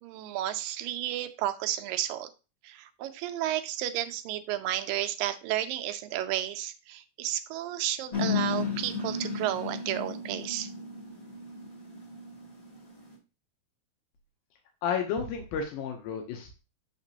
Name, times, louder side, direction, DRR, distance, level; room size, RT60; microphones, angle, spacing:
voice 1, 0.0-2.3 2.6-10.7, right 12 dB, 80° right, 9 dB, 2.2 m, -32 dB
sound 1, 8.1-13.1, left 4 dB, 25° left, 0.8 m, -34 dB
voice 2, 14.8-16.6, left 6 dB, 80° left, 4 dB, 2.6 m, -32 dB
6.5 x 5.9 x 2.7 m, 0.31 s
omnidirectional pair, 4.2 m